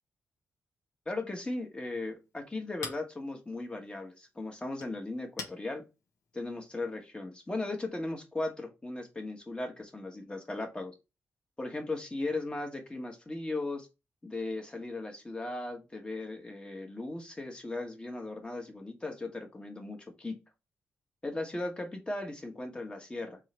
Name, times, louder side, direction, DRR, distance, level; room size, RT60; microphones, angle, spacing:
voice 1, 1.0-5.8 6.3-10.9 11.6-13.9 14.2-20.4 21.2-23.4, left 2 dB, 20° left, 2 dB, 1.3 m, -37 dB
Chink clink, 1.5-7.1, left 4 dB, 80° left, 1.1 m, -49 dB
3.6 x 3.2 x 4.4 m, 0.27 s
cardioid pair, 90°, 5 cm